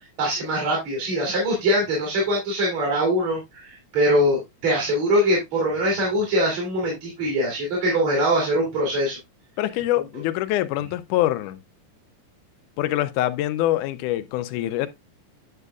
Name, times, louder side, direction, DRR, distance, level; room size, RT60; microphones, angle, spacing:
voice 1, 0.2-9.2, equal, 60° right, 4.0 m, -22 dB
voice 2, 9.6-11.6 12.8-14.9, left 14 dB, 85° left, 2.1 m, -24 dB
9.9 x 6.6 x 2.3 m
omnidirectional pair, 3.5 m